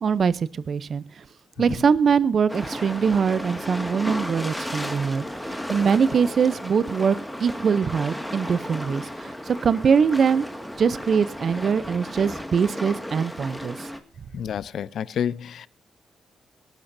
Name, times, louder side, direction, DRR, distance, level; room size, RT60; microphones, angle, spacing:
voice 1, 0.0-1.2 1.6-10.5 10.8-13.9, right 6 dB, 55° right, 0.6 m, -23 dB
sound 1, 2.5-14.0, equal, 5° left, 2.0 m, -34 dB
voice 2, 14.3-15.7, left 8 dB, 70° left, 0.6 m, -29 dB
24.5 x 12.0 x 2.7 m
cardioid pair, 100°, 0 cm